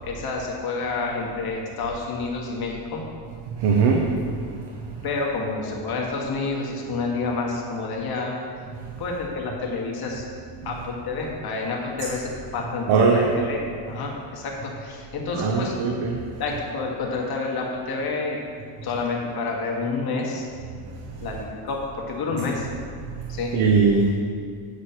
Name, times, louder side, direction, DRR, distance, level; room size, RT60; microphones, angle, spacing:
voice 1, 0.0-3.0 5.0-8.3 9.0-10.3 10.6-15.7 16.4-18.4 18.8-20.5 21.2-22.7 23.3-23.5, left 3 dB, 55° left, -1 dB, 1.9 m, -29 dB
voice 2, 3.6-4.0 12.9-13.2 15.4-16.2 23.5-24.1, right 5 dB, 70° right, 1 dB, 1.0 m, -19 dB
8.6 x 5.0 x 5.8 m, 2.1 s
cardioid pair, 110°, 44 cm